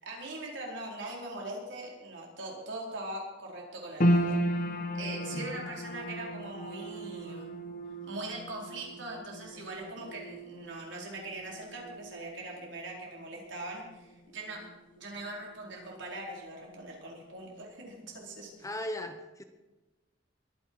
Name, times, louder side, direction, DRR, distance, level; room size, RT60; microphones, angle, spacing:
voice 1, 0.0-4.4 4.9-7.5 8.0-14.7 15.0-18.7, right 2 dB, 65° right, -2 dB, 4.5 m, -41 dB
sound 1, 4.0-16.4 16.7-17.6 18.1-18.2, equal, 45° left, 1.4 m, -35 dB
voice 2, 18.6-19.4, left 1 dB, 15° left, 7 dB, 1.1 m, -38 dB
22.0 x 9.9 x 4.8 m, 1.1 s
head